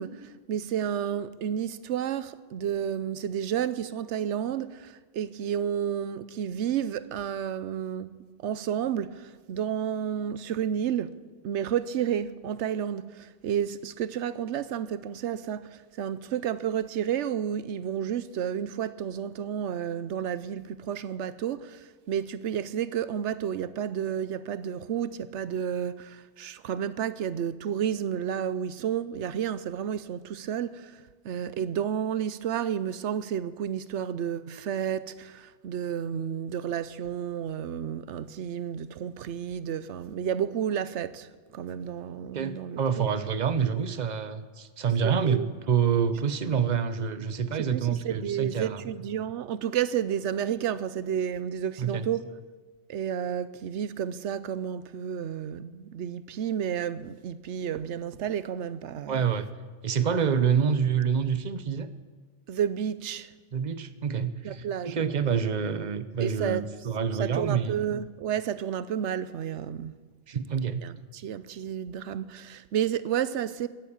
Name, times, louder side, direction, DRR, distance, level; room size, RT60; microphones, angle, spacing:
voice 1, 0.0-8.2 8.4-43.0 45.0-45.5 47.7-52.3 52.9-59.2 62.5-63.3 64.4-65.0 66.2-66.6 67.1-70.0 70.8-73.7, right 9 dB, 80° right, 1.0 m, -31 dB
voice 2, 42.3-48.8 51.8-52.1 59.1-59.5 59.8-61.9 63.5-67.8 70.3-70.8, right 7 dB, 40° right, 0.9 m, -27 dB
16.5 x 12.0 x 7.3 m
omnidirectional pair, 1.2 m